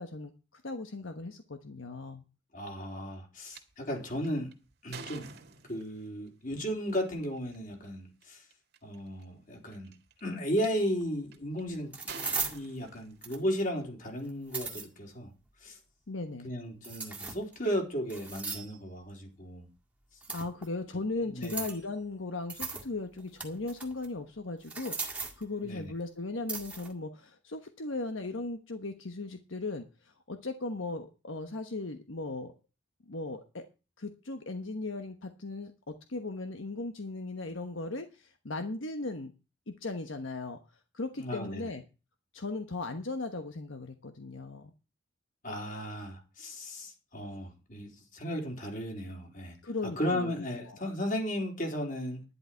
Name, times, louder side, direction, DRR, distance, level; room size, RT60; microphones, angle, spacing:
voice 1, 0.0-2.2 16.1-16.5 20.3-32.5 33.1-33.6 34.0-39.3 39.7-40.6 40.9-41.8 42.3-44.7 49.6-50.3 50.6-50.8, left 3 dB, 75° left, 1.2 m, -37 dB
voice 2, 2.5-4.5 4.8-5.4 5.7-8.4 8.8-9.9 10.2-12.1 12.5-15.3 15.6-15.8 16.4-19.7 21.3-21.6 25.6-25.9 41.2-41.7 45.4-49.5 50.0-52.2, equal, 45° left, 3.7 m, -35 dB
sound 1, 3.5-3.6 4.2-6.1 7.4-7.6 8.2-8.3 8.5-9.0 9.7-10.7 11.3-11.6 12.1-13.5, right 5 dB, 55° right, 2.1 m, -47 dB
sound 2, 11.0-11.1 11.9-12.6 13.2-13.6 14.3-14.9 16.8-17.5 18.1-18.8 20.2-20.7 21.4-21.8 22.5-22.9 23.2-24.1 24.6-25.4 26.5-26.9, right 4 dB, 5° right, 1.9 m, -37 dB
11.0 x 11.0 x 4.5 m
head